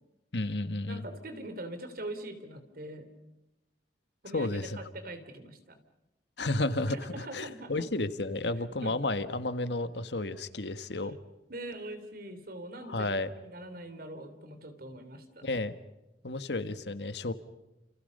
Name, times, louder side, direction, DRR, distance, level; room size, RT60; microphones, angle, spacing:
voice 1, 0.3-1.0 4.3-4.8 6.4-11.2 12.9-13.3 15.4-15.8 16.2-17.3, left 2 dB, 75° left, 11 dB, 1.5 m, -32 dB
voice 2, 0.9-3.1 4.2-5.8 6.9-7.9 8.7-9.1 11.5-15.5, right 1 dB, 60° right, 9 dB, 3.4 m, -43 dB
29.5 x 29.0 x 5.5 m, 1.0 s
head